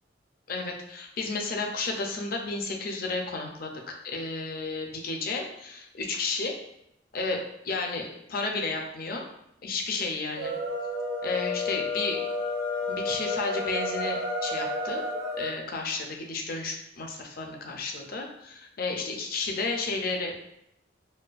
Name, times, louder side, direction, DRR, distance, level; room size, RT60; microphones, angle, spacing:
voice 1, 0.5-6.6 7.1-9.2 9.6-10.5 11.2-12.2 12.9-15.0 15.4-20.4, left 3 dB, 50° left, 2 dB, 0.5 m, -32 dB
sound 1, 10.3-15.6, left 2 dB, 75° right, 0.6 m, -31 dB
4.2 x 2.3 x 2.4 m, 0.79 s
head